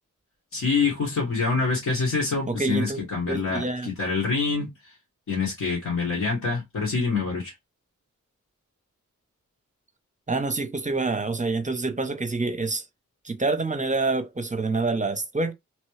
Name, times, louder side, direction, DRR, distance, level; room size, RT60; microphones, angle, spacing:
voice 1, 0.5-4.7 5.3-7.5, left 4 dB, 75° left, 1.5 m, -26 dB
voice 2, 2.5-3.0 3.3-3.9 10.3-12.8 13.2-15.5, right 3 dB, 25° right, 0.7 m, -27 dB
3.1 x 2.3 x 3.1 m
cardioid pair, 55°, 31 cm